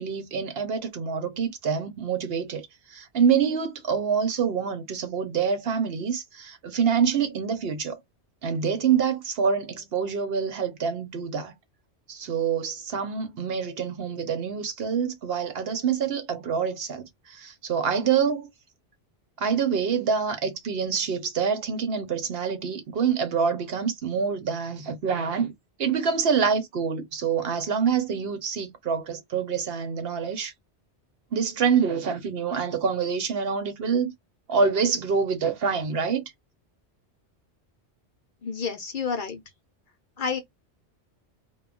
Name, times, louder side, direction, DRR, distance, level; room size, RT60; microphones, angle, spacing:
voice 1, 0.0-8.0 8.4-11.5 12.1-18.5 19.4-25.5 25.8-30.5 31.3-34.1 34.5-36.2, right 6 dB, 65° right, 0.9 m, -26 dB
voice 2, 38.4-39.4 40.2-40.4, left 5 dB, 55° left, 0.7 m, -29 dB
2.2 x 2.1 x 3.7 m
omnidirectional pair, 1.2 m